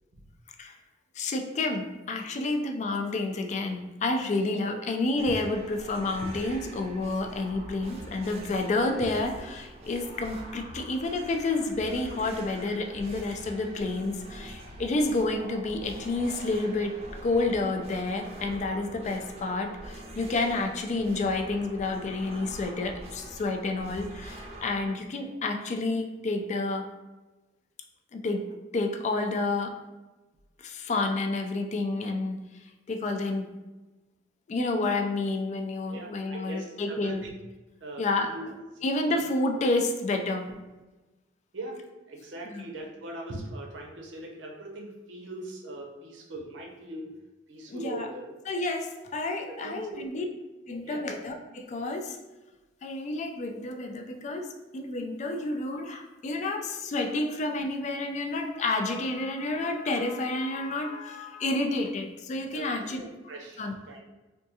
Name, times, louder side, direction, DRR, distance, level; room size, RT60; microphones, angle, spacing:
voice 1, 1.2-16.9 17.2-26.8 28.1-28.5 28.7-29.7 30.6-32.4 32.9-33.5 34.5-37.2 38.0-38.3 38.8-40.5 42.5-42.6 47.7-48.1 48.5-50.3 50.7-52.2 52.8-63.0 63.6-63.7, left 2 dB, 40° left, 4 dB, 0.3 m, -30 dB
sound 1, 5.2-24.9, right 1 dB, 35° right, 0.5 m, -44 dB
voice 2, 35.9-37.3 37.7-38.5 38.7-38.8 39.1-39.2 39.5-39.7 41.5-47.1 47.5-48.4 49.5-50.1 50.8-51.0 62.5-64.0, right 1 dB, 80° right, 0 dB, 0.6 m, -41 dB
3.6 x 2.3 x 2.7 m, 1.1 s
head